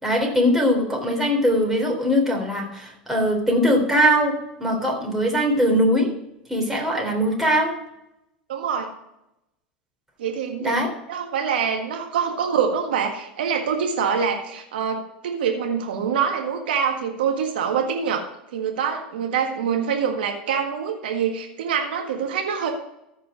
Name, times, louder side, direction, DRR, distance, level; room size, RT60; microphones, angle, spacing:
voice 1, 0.0-4.3 4.6-6.1 6.5-7.7 10.6-10.9, equal, 5° right, -1 dB, 3.5 m, -21 dB
voice 2, 8.5-8.9 10.2-10.8 11.1-18.2 18.5-22.7, right 7 dB, 75° right, 3 dB, 1.6 m, -25 dB
14.5 x 4.9 x 5.0 m, 0.84 s
hypercardioid pair, 95°, 5 cm